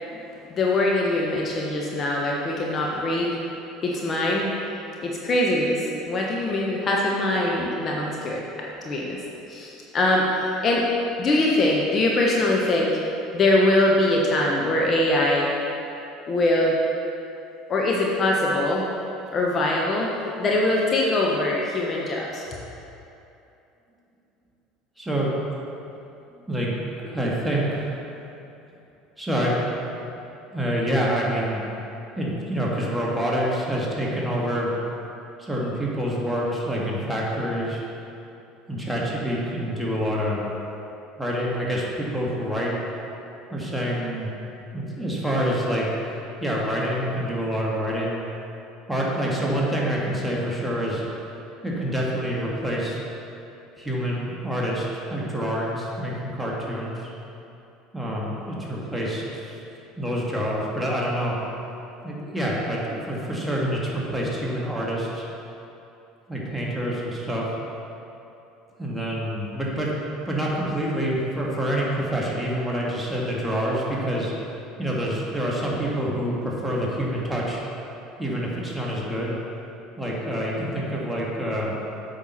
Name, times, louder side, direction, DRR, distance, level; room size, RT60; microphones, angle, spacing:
voice 1, 0.5-3.4 3.8-4.5 5.0-8.4 8.8-9.2 9.5-10.3 10.6-10.8 11.2-12.9 13.3-15.5 16.3-16.8 17.7-18.8 19.3-20.1 20.4-22.5, left 1 dB, 40° left, -2 dB, 1.0 m, -22 dB
voice 2, 25.0-25.3 26.5-26.7 27.0-28.0 29.2-29.6 30.5-31.6 32.2-34.7 35.4-37.8 38.7-40.4 41.2-42.7 43.5-44.3 44.7-45.9 46.4-48.2 48.9-51.0 51.6-53.0 53.8-57.1 57.9-59.6 60.0-61.4 62.0-65.3 66.3-67.4 68.8-69.9 70.3-74.3 74.8-77.6 78.2-79.3 80.0-81.7, equal, 5° right, -5 dB, 1.9 m, -27 dB
8.3 x 5.8 x 4.2 m, 2.8 s
hypercardioid pair, 70°, 0 cm